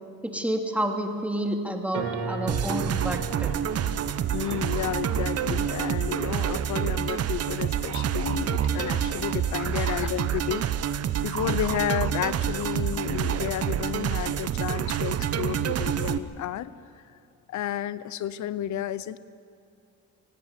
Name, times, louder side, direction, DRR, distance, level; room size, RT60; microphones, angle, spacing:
voice 1, 0.2-3.5 9.7-9.9, right 1 dB, 5° right, 2 dB, 2.6 m, -30 dB
sound 1, 1.9-8.4, right 3 dB, 75° right, 3.0 m, -38 dB
sound 2, 2.5-16.2, right 9 dB, 55° right, 0.9 m, -27 dB
voice 2, 4.3-10.6 11.2-16.7 17.5-19.2, left 12 dB, 70° left, 17 dB, 0.8 m, -31 dB
18.0 x 17.0 x 9.6 m, 2.6 s
cardioid pair, 90°, 30 cm